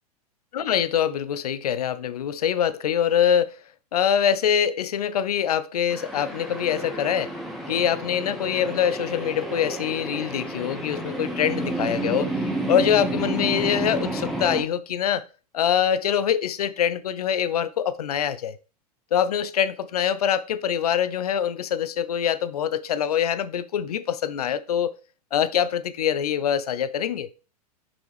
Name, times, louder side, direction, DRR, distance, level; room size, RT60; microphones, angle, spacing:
voice 1, 0.5-3.6 3.9-7.3 7.7-12.3 12.7-15.2 15.5-18.6 19.1-25.0 25.3-27.3, left 9 dB, 70° left, 0.6 m, -24 dB
sound 1, 5.9-14.6, right 1 dB, ahead, 1.3 m, -30 dB
5.4 x 5.4 x 3.3 m
figure-of-eight pair, 100°, 20 cm